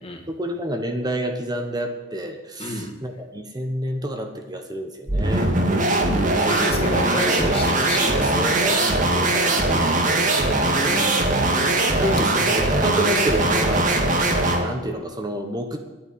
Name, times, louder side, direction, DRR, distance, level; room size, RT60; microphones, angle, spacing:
voice 1, 0.3-5.5 8.3-10.5 12.0-14.0 14.6-15.8, right 1 dB, 20° right, 5 dB, 1.2 m, -29 dB
voice 2, 2.6-2.9 6.4-8.7 10.8-11.2, left 1 dB, 35° left, 1 dB, 2.4 m, -30 dB
sound 1, 5.1-14.7, right 2 dB, 45° right, 2.1 m, -20 dB
10.5 x 8.9 x 10.0 m, 1.2 s
head